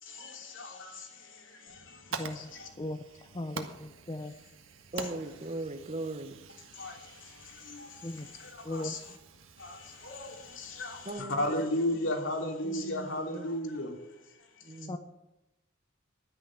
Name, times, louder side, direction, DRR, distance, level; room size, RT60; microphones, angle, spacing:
voice 1, 0.0-2.7 5.0-5.1 6.7-9.2 9.6-14.0 14.6-14.9, left 1 dB, 70° left, 2 dB, 3.0 m, -36 dB
Fire, 1.7-11.1, right 5 dB, 90° right, 1.5 m, -47 dB
voice 2, 3.3-4.3 8.0-8.3 8.7-8.9 14.9-15.0, left 1 dB, 25° left, 7 dB, 0.7 m, -37 dB
voice 3, 4.9-6.4 11.1-11.5 12.6-13.6 14.6-15.0, right 2 dB, 35° right, 9 dB, 1.0 m, -39 dB
11.5 x 10.0 x 7.7 m, 0.98 s
head